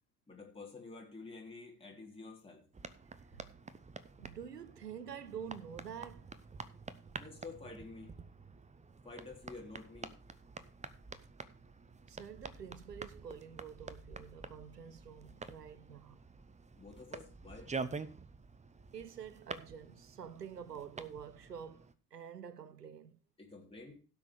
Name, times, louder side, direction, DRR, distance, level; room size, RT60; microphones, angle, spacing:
voice 1, 0.3-2.6 6.8-6.9 7.2-8.2 9.0-10.2 16.8-17.7 23.4-24.0, left 3 dB, 10° left, 3.7 m, -50 dB
sound 1, 2.7-21.9, right 4 dB, 15° right, 0.9 m, -48 dB
voice 2, 4.2-6.3 12.1-16.2 18.9-23.2, right 8 dB, 90° right, 0.6 m, -48 dB
16.5 x 6.2 x 4.7 m
figure-of-eight pair, 55°, 46 cm